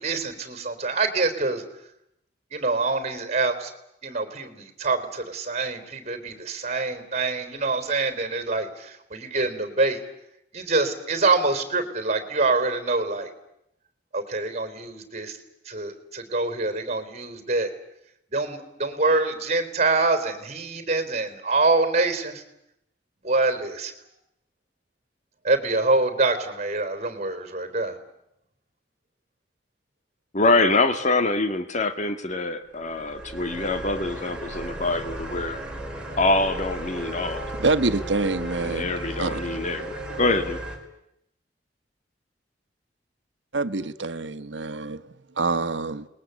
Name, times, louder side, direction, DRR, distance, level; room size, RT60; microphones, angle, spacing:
voice 1, 0.0-1.6 2.5-3.7 4.0-10.0 10.5-13.3 14.1-15.4 15.7-17.7 18.3-22.4 23.2-23.9 25.4-28.0, right 3 dB, 40° right, 9 dB, 4.0 m, -25 dB
voice 2, 30.3-35.6 36.2-37.5 38.6-40.6, left 2 dB, 40° left, 9 dB, 1.8 m, -25 dB
sound 1, 32.7-40.8, right 1 dB, 5° right, 4.4 m, -35 dB
voice 3, 37.6-39.6 43.5-46.1, right 3 dB, 90° right, 11 dB, 1.3 m, -26 dB
29.0 x 21.0 x 8.3 m, 0.79 s
head